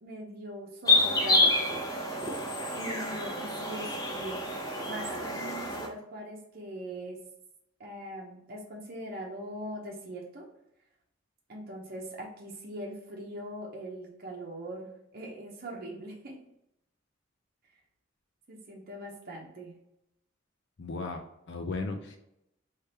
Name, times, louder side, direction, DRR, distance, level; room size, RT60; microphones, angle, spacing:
voice 1, 0.0-1.5 2.7-7.2 7.8-10.5 11.5-16.4 18.5-19.8, right 1 dB, 50° right, -2 dB, 0.9 m, -41 dB
sound 1, 0.9-5.9, left 2 dB, 20° left, 0.9 m, -28 dB
voice 2, 20.8-22.2, left 3 dB, 60° left, 4 dB, 0.5 m, -36 dB
3.4 x 3.2 x 4.3 m, 0.82 s
head